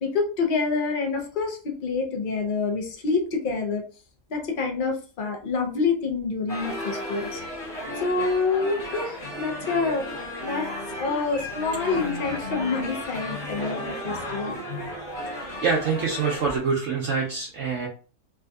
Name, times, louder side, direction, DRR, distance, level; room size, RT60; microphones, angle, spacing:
voice 1, 0.0-3.8 4.3-7.4 8.0-10.1 10.4-10.7 10.9-14.5, left 4 dB, 75° left, 2 dB, 0.4 m, -27 dB
sound 1, 6.5-16.6, left 1 dB, 30° left, 1.1 m, -34 dB
voice 2, 15.6-17.9, right 5 dB, 65° right, -2 dB, 0.8 m, -25 dB
3.4 x 2.6 x 2.2 m, 0.38 s
omnidirectional pair, 1.7 m